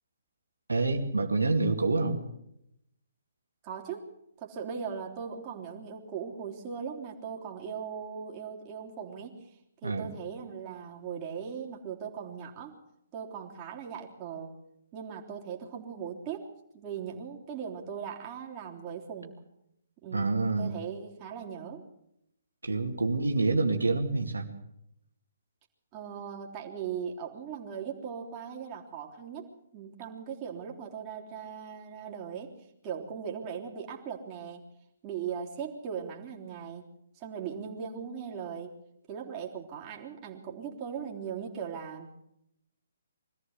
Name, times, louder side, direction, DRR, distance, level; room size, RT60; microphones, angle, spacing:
voice 1, 0.7-2.2 9.8-10.1 20.1-20.7 22.6-24.5, right 3 dB, 85° right, 4 dB, 2.3 m, -27 dB
voice 2, 3.6-4.1 4.4-9.5 9.8-12.8 13.1-14.5 14.9-19.3 20.0-21.8 25.9-32.5 32.8-34.6 35.0-36.8 37.1-38.7 39.1-42.2, right 7 dB, 30° right, -1 dB, 3.4 m, -39 dB
23.5 x 14.5 x 8.1 m, 0.80 s
figure-of-eight pair, 135°, 0 cm